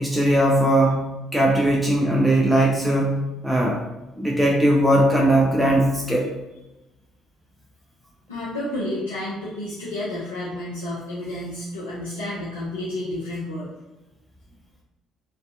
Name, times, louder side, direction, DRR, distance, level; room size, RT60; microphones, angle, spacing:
voice 1, 0.0-3.8 4.2-6.3, right 1 dB, 5° right, -2 dB, 0.4 m, -19 dB
voice 2, 8.3-13.7, left 1 dB, 80° left, -9 dB, 0.4 m, -30 dB
2.6 x 2.2 x 2.3 m, 1.0 s
figure-of-eight pair, 50°, 0 cm